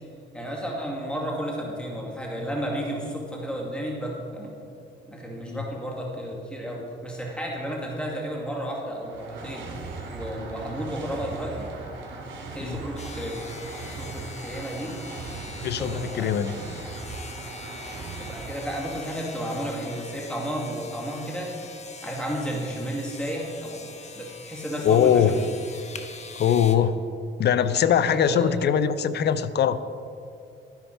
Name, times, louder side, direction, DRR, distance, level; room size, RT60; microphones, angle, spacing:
voice 1, 0.3-4.6 5.1-9.7 10.1-11.7 12.5-13.4 13.9-14.9 15.6-16.3 18.2-21.5 22.0-25.5 27.7-27.8 28.1-28.6, equal, 5° left, -2 dB, 2.1 m, -32 dB
sound 1, 8.8-19.7, right 3 dB, 65° right, 3.2 m, -39 dB
sound 2, 13.0-26.8, left 4 dB, 35° left, 1.1 m, -43 dB
voice 2, 15.6-16.5 24.8-25.3 26.4-27.0 27.4-29.8, left 8 dB, 60° left, 14 dB, 0.6 m, -21 dB
12.0 x 10.5 x 4.5 m, 2.5 s
cardioid pair, 90°, 20 cm